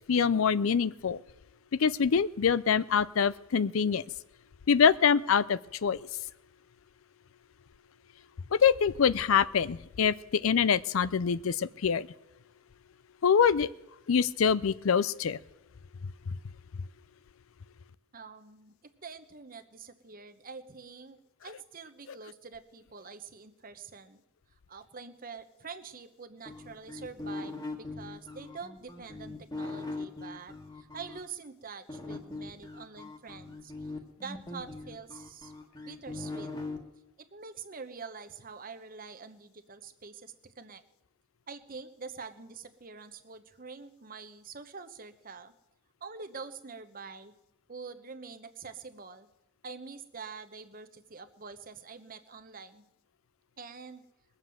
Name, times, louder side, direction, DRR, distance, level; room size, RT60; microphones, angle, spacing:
voice 1, 0.1-1.2 1.8-4.0 4.7-6.0 8.5-12.1 13.2-13.7 14.1-15.4, left 6 dB, 80° left, 17 dB, 0.5 m, -25 dB
voice 2, 18.1-24.2 24.7-33.9 34.2-35.5 35.8-36.5 37.2-40.8 41.5-45.5 46.0-47.3 47.7-49.3 49.6-52.8 53.6-54.0, right 5 dB, 40° right, 9 dB, 1.0 m, -46 dB
sound 1, 26.5-31.2 31.9-36.8, left 2 dB, 20° left, 1.5 m, -40 dB
21.0 x 7.4 x 7.7 m, 0.93 s
head